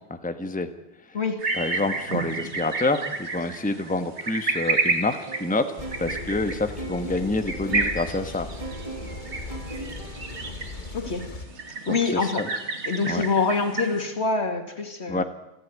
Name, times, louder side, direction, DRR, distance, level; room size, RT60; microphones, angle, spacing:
voice 1, 0.1-0.7 1.1-1.2 1.5-8.5 11.9-12.5 13.0-13.2 15.1-15.2, left 2 dB, 5° left, 8 dB, 1.2 m, -28 dB
voice 2, 1.1-1.4 10.9-11.3 11.9-12.4 12.9-15.2, left 4 dB, 65° left, 6 dB, 2.6 m, -25 dB
sound 1, 1.4-14.1, right 3 dB, 70° right, 2.6 m, -31 dB
sound 2, 5.3-10.4, right 2 dB, 30° right, 2.2 m, -40 dB
sound 3, 5.8-11.5, left 3 dB, 40° left, 1.5 m, -38 dB
29.0 x 11.5 x 9.5 m, 0.95 s
omnidirectional pair, 1.2 m